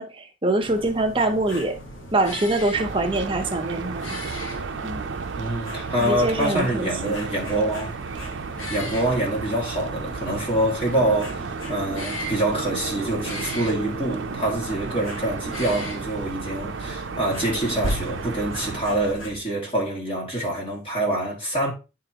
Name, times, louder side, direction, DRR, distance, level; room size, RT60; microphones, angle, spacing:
voice 1, 0.0-1.8 2.1-4.2 4.8-5.0 6.0-7.2, right 2 dB, 25° right, 0.8 m, -24 dB
sound 1, 0.6-19.4, equal, 75° left, 1.3 m, -37 dB
sound 2, 2.7-18.8, right 5 dB, 60° right, 0.5 m, -33 dB
voice 2, 5.4-8.3 8.7-21.7, right 1 dB, 30° left, 2.1 m, -26 dB
10.0 x 3.7 x 2.8 m
head